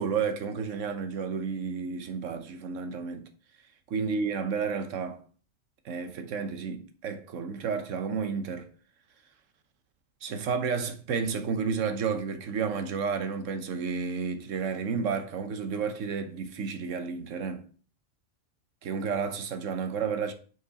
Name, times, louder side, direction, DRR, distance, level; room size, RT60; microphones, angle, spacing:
voice 1, 0.0-3.3 3.9-5.2 5.8-8.7 10.2-17.7 18.8-20.3, right 5 dB, 75° right, 1.2 m, -31 dB
5.3 x 4.6 x 4.0 m
omnidirectional pair, 1.3 m